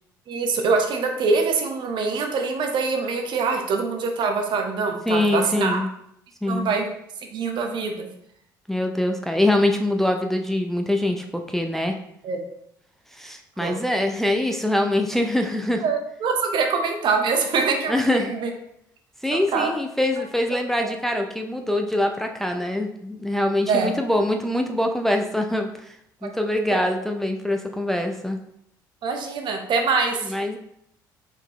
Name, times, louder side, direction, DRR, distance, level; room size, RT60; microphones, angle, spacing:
voice 1, 0.3-5.8 6.5-6.9 7.3-8.1 12.2-12.4 13.6-13.8 15.8-18.5 19.3-19.7 20.8-20.9 23.7-23.9 26.2-26.3 26.7-26.8 29.0-30.3, right 4 dB, 50° right, 4 dB, 0.8 m, -24 dB
voice 2, 5.1-5.9 6.4-6.7 8.7-12.0 13.1-15.8 17.9-18.3 19.2-26.0 26.2-28.4 30.2-30.6, left 1 dB, 5° left, 3 dB, 0.5 m, -24 dB
4.4 x 3.8 x 3.0 m, 0.75 s
hypercardioid pair, 55°, 10 cm